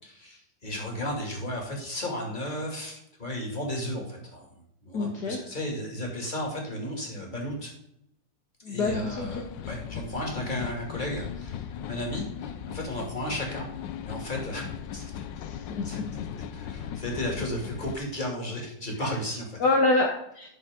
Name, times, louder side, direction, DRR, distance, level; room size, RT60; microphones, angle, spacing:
voice 1, 0.0-4.5 4.8-7.7 8.7-13.7 14.0-15.2 15.8-16.0 16.5-19.6, left 1 dB, 25° left, 0 dB, 2.6 m, -34 dB
voice 2, 4.9-5.4 8.6-9.3 15.4-16.0 19.6-20.5, left 2 dB, 65° left, 1 dB, 1.7 m, -26 dB
sound 1, 8.9-18.0, left 9 dB, 90° left, 1.4 m, -38 dB
11.0 x 6.6 x 3.7 m, 0.76 s
omnidirectional pair, 2.0 m